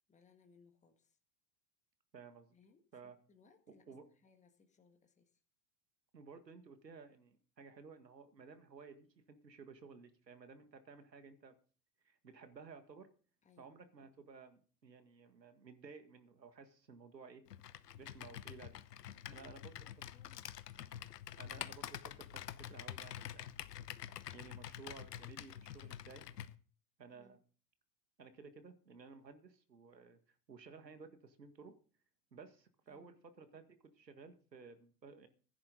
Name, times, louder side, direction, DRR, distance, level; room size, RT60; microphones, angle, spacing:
voice 1, 0.1-1.1 2.5-3.8 4.2-5.3 13.4-13.8 19.2-20.6 27.1-27.4 32.9-33.2, left 5 dB, 15° left, 5 dB, 1.7 m, -68 dB
voice 2, 2.1-2.6 2.9-3.2 3.7-4.1 6.1-11.6 12.0-13.1 13.6-17.4 17.9-18.8 19.3-20.1 21.4-23.5 24.1-26.3 27.0-27.4 28.2-30.2 30.5-31.8 32.3-35.3, right 5 dB, 85° right, 9 dB, 1.9 m, -56 dB
Computer keyboard, 17.5-26.5, left 11 dB, 75° left, 1.0 m, -47 dB
15.5 x 10.5 x 3.9 m, 0.39 s
figure-of-eight pair, 90°, 49 cm